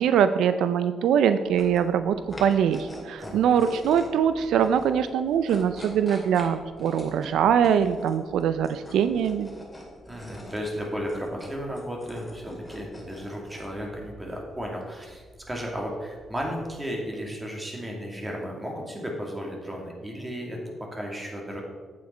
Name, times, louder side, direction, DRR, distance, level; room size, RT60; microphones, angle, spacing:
voice 1, 0.0-9.5, right 8 dB, 85° right, 11 dB, 0.4 m, -23 dB
sound 1, 1.4-16.8, equal, 10° left, 2.4 m, -44 dB
voice 2, 3.2-3.5 10.1-20.6 20.9-21.6, equal, 15° right, 0 dB, 2.3 m, -34 dB
8.8 x 8.5 x 4.4 m, 1.5 s
cardioid pair, 100°, 0 cm